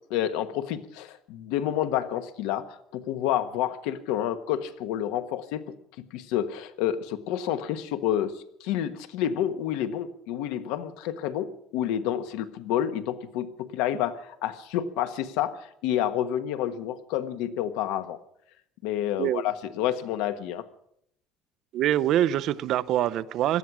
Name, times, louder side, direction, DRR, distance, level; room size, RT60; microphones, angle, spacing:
voice 1, 0.1-5.7 6.1-18.2 18.8-20.6, left 11 dB, 85° left, 11 dB, 1.3 m, -29 dB
voice 2, 21.7-23.6, right 12 dB, 50° right, 17 dB, 0.6 m, -24 dB
18.0 x 13.0 x 6.1 m, 0.72 s
cardioid pair, 160°, 0 cm